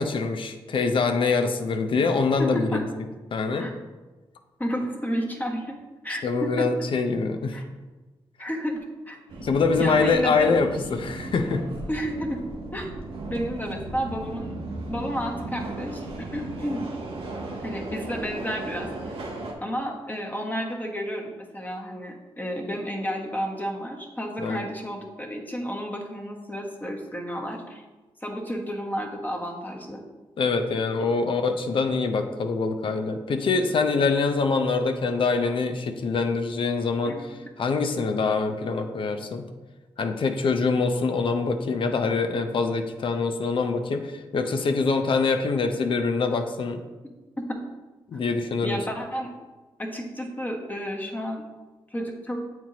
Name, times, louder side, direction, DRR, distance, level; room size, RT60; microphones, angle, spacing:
voice 1, 0.0-2.8 3.3-3.7 6.2-7.6 9.4-11.6 24.4-24.6 30.4-39.5 40.0-46.8 48.1-48.8, left 4 dB, 60° left, 6 dB, 0.6 m, -24 dB
voice 2, 2.4-2.8 3.6-3.7 4.6-5.8 6.0-6.7 7.5-7.6 8.4-8.8 9.1-9.2 9.8-10.5 11.9-12.4 12.7-12.9 13.3-14.5 14.9-16.9 17.6-18.9 19.6-27.8 28.2-30.0 37.0-37.2 47.4-47.6 48.6-49.3 49.8-51.4 51.9-52.4, equal, 20° left, 1 dB, 1.2 m, -31 dB
Subway metro underground, 9.3-19.5, right 2 dB, 75° right, 1.0 m, -36 dB
7.4 x 4.5 x 2.9 m, 1.2 s
cardioid pair, 65°, 10 cm